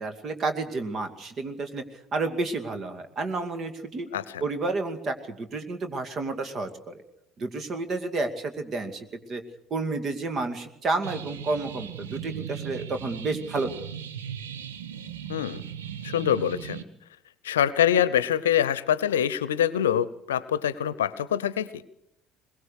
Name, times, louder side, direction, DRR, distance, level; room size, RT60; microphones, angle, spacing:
voice 1, 0.0-1.8 2.1-4.1 4.4-7.0 7.4-9.4 9.7-13.7, right 3 dB, 40° right, 8 dB, 2.4 m, -30 dB
voice 2, 4.1-4.4 15.3-15.6 16.0-16.8 17.4-21.8, left 10 dB, 75° left, 18 dB, 0.8 m, -25 dB
sound 1, 11.0-16.8, right 9 dB, 75° right, 1.2 m, -38 dB
22.0 x 21.0 x 6.6 m, 0.78 s
figure-of-eight pair, 60°, 0 cm